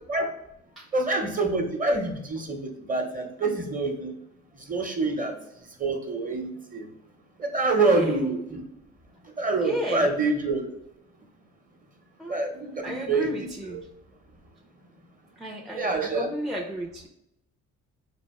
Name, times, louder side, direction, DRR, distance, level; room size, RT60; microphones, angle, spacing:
voice 1, 0.9-2.6 2.9-4.1 4.7-5.3 5.8-6.8 7.4-8.6 9.4-10.7 12.3-13.3 15.7-16.3, right 3 dB, 25° right, 3 dB, 0.9 m, -26 dB
voice 2, 7.8-8.3 9.6-10.2 12.2-12.4 12.8-13.9 15.4-17.1, equal, ahead, -1 dB, 0.5 m, -33 dB
4.1 x 2.5 x 3.6 m, 0.82 s
cardioid pair, 90°, 30 cm